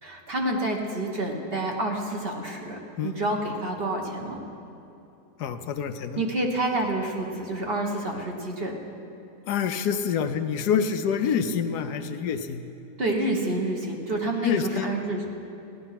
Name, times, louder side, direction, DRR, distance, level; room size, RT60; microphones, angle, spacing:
voice 1, 0.0-4.4 6.2-8.7 13.0-15.2, right 1 dB, 40° right, 1 dB, 1.4 m, -28 dB
voice 2, 5.4-6.2 9.5-12.6 14.4-14.9, left 7 dB, 75° left, 9 dB, 1.2 m, -27 dB
16.0 x 11.5 x 5.8 m, 2.8 s
omnidirectional pair, 1.8 m